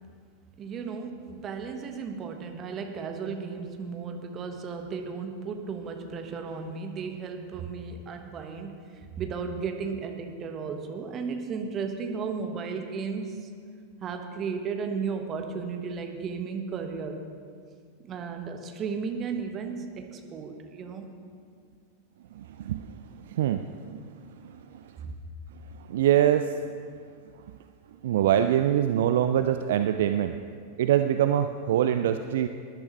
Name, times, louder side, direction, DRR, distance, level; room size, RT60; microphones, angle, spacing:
voice 1, 0.6-13.5 14.0-17.2 18.0-21.1, right 5 dB, 30° right, 5 dB, 1.2 m, -34 dB
voice 2, 22.3-25.0 25.5-26.8 28.0-30.4 30.8-32.5, right 10 dB, 55° right, 9 dB, 0.4 m, -25 dB
17.5 x 12.0 x 3.1 m, 2.1 s
figure-of-eight pair, 90°, 0 cm